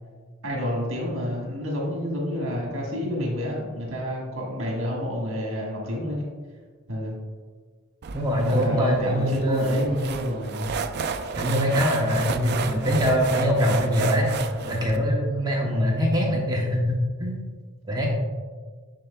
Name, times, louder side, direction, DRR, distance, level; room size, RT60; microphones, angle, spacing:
voice 1, 0.4-6.3 6.9-7.2 8.4-10.7 15.6-16.0, equal, 70° right, -2 dB, 1.5 m, -29 dB
sound 1, 8.0-15.0, right 5 dB, 55° right, 0.4 m, -32 dB
voice 2, 8.1-10.0 11.3-14.3 14.7-17.5 17.9-18.2, equal, 20° right, -1 dB, 0.8 m, -23 dB
7.5 x 6.7 x 2.2 m, 1.5 s
head